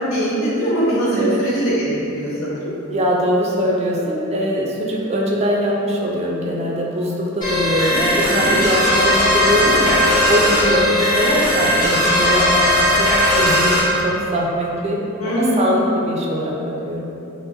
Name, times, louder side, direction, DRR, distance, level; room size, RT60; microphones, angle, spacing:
voice 1, 0.1-2.6 8.2-8.6 15.2-15.8, right 1 dB, 75° left, -8 dB, 0.9 m, -21 dB
voice 2, 2.9-12.7 13.0-17.1, equal, 30° right, -2 dB, 0.3 m, -22 dB
sound 1, 7.4-13.8, left 1 dB, 40° left, 1.0 m, -17 dB
3.6 x 2.5 x 2.7 m, 2.9 s
head